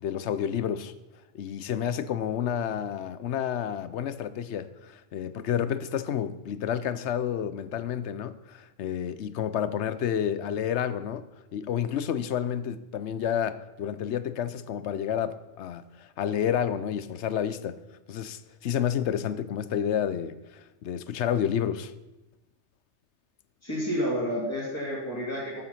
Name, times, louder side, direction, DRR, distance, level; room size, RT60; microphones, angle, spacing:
voice 1, 0.0-0.9 1.3-17.8 18.1-21.9, left 9 dB, 75° left, 1.0 m, -30 dB
voice 2, 23.6-25.6, equal, 15° left, 3.0 m, -30 dB
13.0 x 7.7 x 5.7 m
omnidirectional pair, 1.2 m